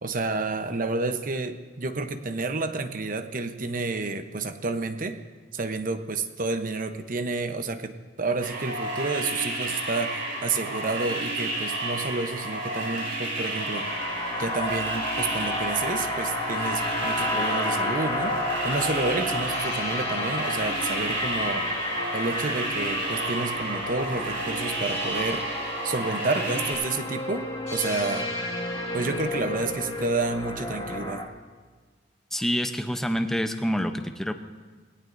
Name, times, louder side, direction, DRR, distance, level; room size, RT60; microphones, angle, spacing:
voice 1, 0.0-5.2 5.5-13.9 14.4-21.7 22.1-25.5 25.8-28.3 28.9-31.3, right 3 dB, 45° right, 8 dB, 0.8 m, -30 dB
sound 1, 8.4-26.7, right 1 dB, 80° right, 5.9 m, -31 dB
sound 2, 13.5-31.3, left 2 dB, 30° left, 1.9 m, -31 dB
voice 2, 32.3-34.3, equal, ahead, 6 dB, 0.7 m, -27 dB
21.5 x 17.0 x 2.6 m, 1.4 s
head